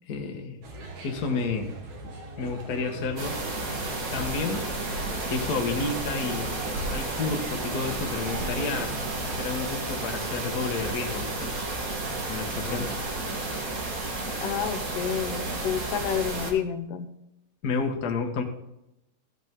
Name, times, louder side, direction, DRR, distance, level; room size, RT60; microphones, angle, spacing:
voice 1, 0.1-0.6 1.0-1.7 2.4-3.4 4.1-4.7 5.3-6.6 6.9-9.0 9.2-11.5 12.3-12.9 17.6-18.4, left 4 dB, 50° left, 2 dB, 1.1 m, -30 dB
sound 1, 0.6-9.3, right 3 dB, 65° right, 3.2 m, -40 dB
sound 2, 3.2-16.5, right 2 dB, 45° right, 1.1 m, -32 dB
voice 2, 14.4-17.1, left 8 dB, 80° left, 10 dB, 2.4 m, -29 dB
14.5 x 8.2 x 3.7 m, 0.88 s
omnidirectional pair, 3.8 m